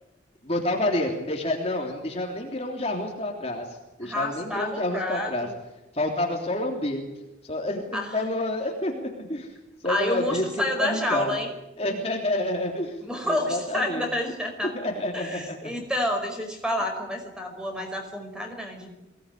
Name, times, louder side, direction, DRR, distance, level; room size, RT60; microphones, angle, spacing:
voice 1, 0.4-5.5 5.9-7.0 7.4-9.5 9.8-10.4 10.8-11.3 11.8-14.1 14.7-15.7, left 1 dB, 30° left, 1 dB, 3.2 m, -29 dB
voice 2, 4.0-5.5 7.9-8.3 9.8-11.5 13.0-14.7 15.1-18.9, left 1 dB, 5° right, 3 dB, 5.2 m, -29 dB
23.5 x 18.5 x 10.0 m, 0.97 s
head